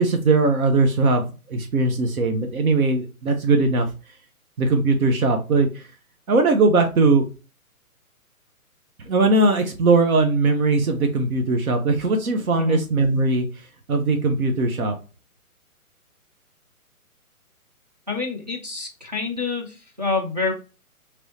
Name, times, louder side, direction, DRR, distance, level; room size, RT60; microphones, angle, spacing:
voice 1, 0.0-3.9 4.6-5.8 6.3-7.2 9.1-13.4 13.9-14.9, right 3 dB, 70° right, 4 dB, 0.8 m, -20 dB
voice 2, 18.1-20.5, left 3 dB, 30° right, -2 dB, 0.4 m, -27 dB
3.0 x 2.6 x 3.1 m, 0.32 s
hypercardioid pair, 155°, 44 cm